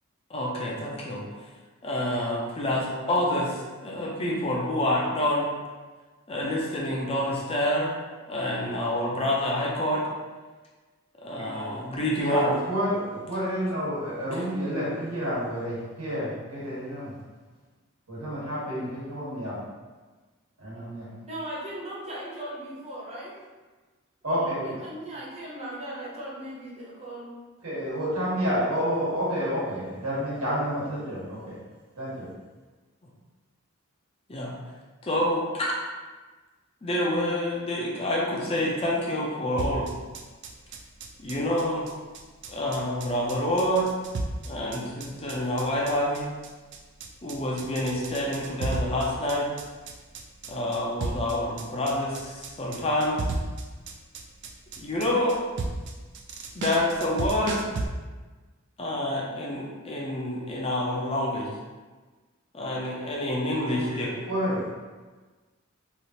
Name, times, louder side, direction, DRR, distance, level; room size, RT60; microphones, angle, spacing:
voice 1, 0.3-1.2 1.8-5.5 6.3-7.9 8.3-10.1 11.2-12.5 14.3-14.4 34.3-34.5 35.0-35.8 36.8-39.9 41.2-41.9 42.5-43.9 44.5-46.3 47.2-49.5 50.5-53.2 54.8-55.4 56.5-57.6 58.8-61.5 62.5-64.1, left 1 dB, 25° left, -3 dB, 0.5 m, -27 dB
voice 2, 11.4-11.8 12.2-17.1 18.1-19.6 20.6-21.1 24.2-24.7 27.6-31.6 31.9-32.3 63.6-64.7, equal, 85° right, -8 dB, 1.3 m, -30 dB
voice 3, 21.3-23.4 24.2-27.3, right 1 dB, 30° right, -6 dB, 0.8 m, -38 dB
sound 1, 39.6-57.9, right 2 dB, 55° right, 0.3 m, -34 dB
3.1 x 2.4 x 2.7 m, 1.3 s
head